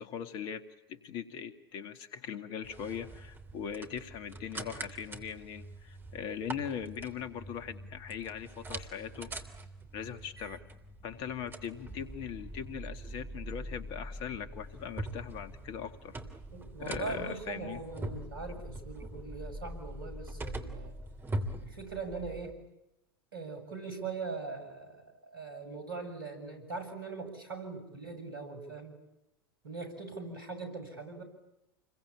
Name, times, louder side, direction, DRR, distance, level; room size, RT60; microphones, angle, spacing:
voice 1, 0.0-9.3 9.9-10.6 11.0-16.2 16.8-17.8, left 8 dB, 40° left, 9 dB, 2.2 m, -40 dB
sound 1, 2.6-22.5, right 1 dB, 15° right, 3.2 m, -43 dB
voice 2, 16.5-20.9 21.6-22.6 23.3-29.0 29.6-31.2, right 4 dB, 70° right, 8 dB, 7.6 m, -41 dB
29.5 x 22.5 x 8.8 m, 0.87 s
figure-of-eight pair, 85°, 12 cm